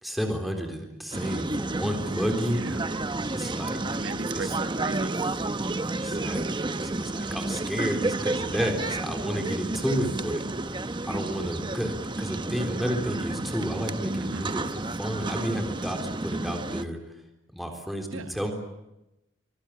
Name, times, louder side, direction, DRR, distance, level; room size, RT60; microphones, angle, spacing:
voice 1, 0.0-2.7 3.3-3.8 4.3-4.5 5.9-10.4 11.1-17.0 17.5-18.5, equal, ahead, 2 dB, 3.7 m, -31 dB
sound 1, 1.1-16.8, right 2 dB, 25° right, 0.9 m, -31 dB
voice 2, 2.5-2.9 3.8-5.1 14.2-14.5 18.1-18.3, right 4 dB, 80° right, 10 dB, 1.1 m, -39 dB
25.5 x 22.5 x 8.5 m, 0.93 s
head